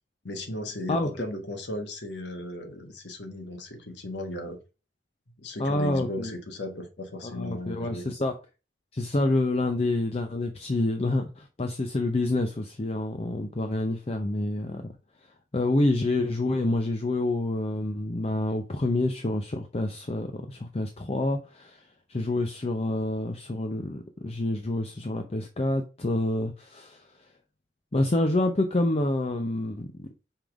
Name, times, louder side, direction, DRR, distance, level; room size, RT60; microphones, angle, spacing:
voice 1, 0.2-4.6 5.4-8.0, left 1 dB, 75° left, 1.4 m, -36 dB
voice 2, 5.6-6.3 7.2-8.3 8.9-14.9 15.5-27.0 27.9-30.1, left 2 dB, 35° left, 0.6 m, -27 dB
5.7 x 3.5 x 4.7 m
head